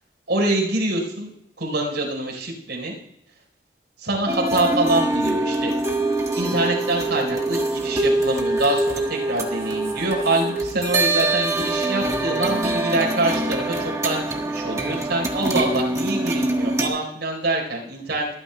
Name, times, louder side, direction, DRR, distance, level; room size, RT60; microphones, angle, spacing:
voice 1, 0.3-1.3 1.6-2.9 4.0-5.7 6.4-18.4, right 2 dB, 75° right, -1 dB, 4.2 m, -25 dB
sound 1, 4.3-16.9, right 2 dB, 15° right, 1.3 m, -24 dB
24.0 x 9.4 x 2.3 m, 0.78 s
head